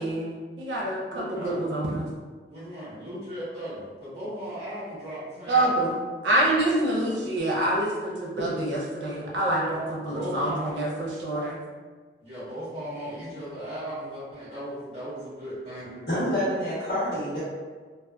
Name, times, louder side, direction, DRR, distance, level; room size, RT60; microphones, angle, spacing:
voice 1, 0.0-2.1 5.5-11.6, right 1 dB, 90° right, -4 dB, 0.6 m, -26 dB
voice 2, 1.1-1.6 2.5-5.5 9.4-10.7 12.2-16.0, equal, 35° right, -9 dB, 1.2 m, -36 dB
voice 3, 16.1-17.4, equal, 65° left, -10 dB, 1.0 m, -27 dB
2.7 x 2.0 x 2.2 m, 1.5 s
head